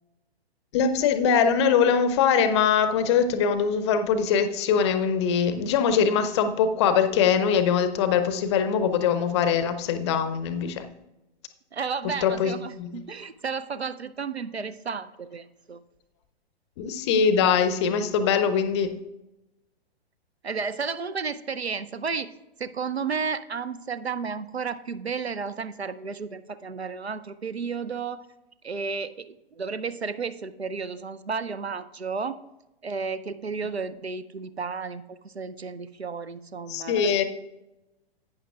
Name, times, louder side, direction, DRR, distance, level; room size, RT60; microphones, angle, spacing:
voice 1, 0.7-10.9 12.2-13.0 16.8-18.9 36.7-37.2, left 7 dB, 30° left, 10 dB, 0.6 m, -22 dB
voice 2, 11.7-15.8 20.4-22.3 22.6-28.3 28.6-32.4 32.8-37.2, right 5 dB, 85° right, 13 dB, 0.6 m, -32 dB
11.5 x 8.8 x 2.4 m, 0.95 s
figure-of-eight pair, 115°, 31 cm